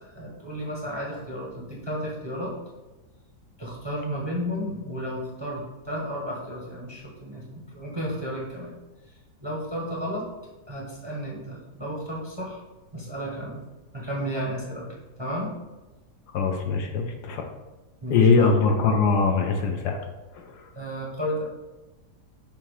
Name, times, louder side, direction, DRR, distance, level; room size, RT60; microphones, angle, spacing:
voice 1, 0.0-2.5 3.6-8.7 9.1-10.2 10.7-12.6 12.9-13.6 13.9-14.9 15.2-15.5 18.0-18.5 20.7-21.4, equal, 20° right, -4 dB, 0.9 m, -33 dB
voice 2, 16.3-17.4 18.1-20.0 20.3-20.7, left 4 dB, 70° left, 4 dB, 1.1 m, -22 dB
7.0 x 2.9 x 4.8 m, 1.1 s
omnidirectional pair, 1.9 m